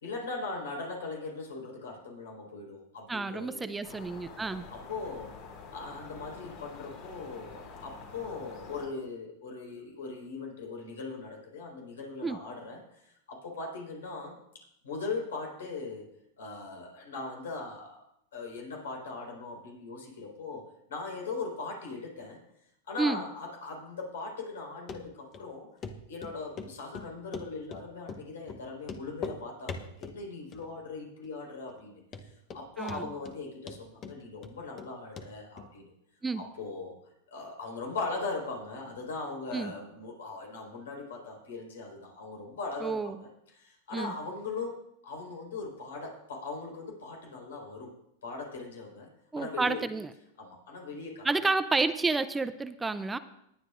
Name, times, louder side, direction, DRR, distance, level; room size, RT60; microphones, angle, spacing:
voice 1, 0.0-3.7 4.7-5.3 5.7-14.4 14.8-16.1 16.4-18.0 18.3-22.4 22.8-25.7 26.1-35.9 36.4-36.9 37.3-47.9 48.2-49.1 49.3-49.8 50.4-51.3, left 3 dB, 85° left, -1 dB, 4.6 m, -40 dB
voice 2, 3.1-4.6 12.2-12.4 23.0-23.2 32.8-33.1 36.2-36.4 39.5-39.7 42.8-43.2 43.9-44.1 49.3-50.1 51.2-53.2, right 3 dB, 10° right, 12 dB, 0.5 m, -30 dB
sound 1, 3.8-8.9, left 4 dB, 55° left, 3.9 m, -47 dB
Run, 24.9-25.0 25.3-25.4 25.8-25.9 26.2-26.7 26.9-27.8 28.1-28.2 28.5-28.6 28.8-29.4 29.7-30.2 30.5-31.0 31.2-31.3 31.8-31.9 32.1-32.6 32.9-33.4 33.7-34.9 35.2-35.3 35.6-35.7, left 5 dB, 35° left, 1.0 m, -40 dB
19.5 x 9.6 x 2.6 m, 0.79 s
hypercardioid pair, 120°, 0 cm